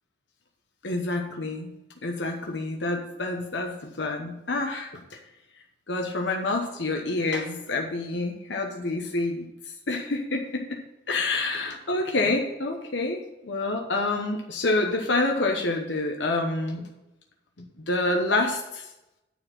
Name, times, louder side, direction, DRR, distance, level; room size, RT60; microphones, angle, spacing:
voice 1, 0.8-1.7 2.0-5.2 5.9-9.5 9.9-10.8 11.1-16.9 17.6-18.9, left 2 dB, 90° left, 2 dB, 1.0 m, -28 dB
9.6 x 4.3 x 7.4 m, 0.94 s
head